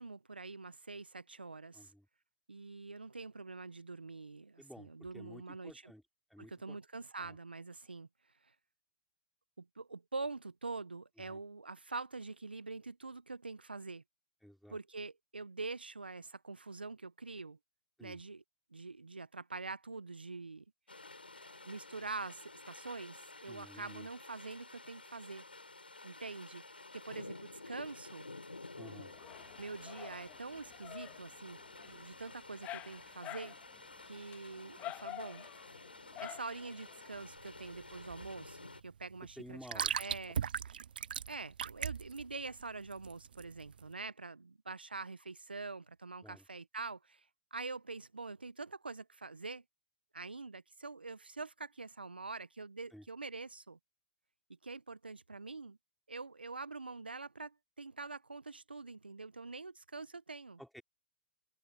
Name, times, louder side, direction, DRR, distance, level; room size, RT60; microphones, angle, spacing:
voice 1, 0.0-1.9 2.5-5.9 6.4-8.1 8.4-8.5 9.6-14.0 14.7-17.6 18.0-18.4 18.7-20.6 21.4-25.4 26.0-28.3 29.6-31.6 31.8-33.6 34.0-35.5 36.2-40.4 41.3-49.6 50.1-53.8 54.6-55.8 56.1-60.6, right 3 dB, 85° right, 1.1 m, -45 dB
voice 2, 1.7-2.1 4.6-6.0 6.3-6.8 7.2-7.4 11.3-11.4 14.4-14.8 18.0-18.2 23.5-24.1 28.8-29.1 39.4-39.9 46.2-46.4 52.9-53.0 60.6-60.8, equal, ahead, 4.3 m, -53 dB
sound 1, 20.9-38.8, left 3 dB, 90° left, 6.4 m, -52 dB
Dog, 29.1-37.2, left 15 dB, 30° left, 1.8 m, -50 dB
sound 2, 37.1-43.9, right 8 dB, 70° right, 0.4 m, -40 dB
figure-of-eight pair, 110°, 5 cm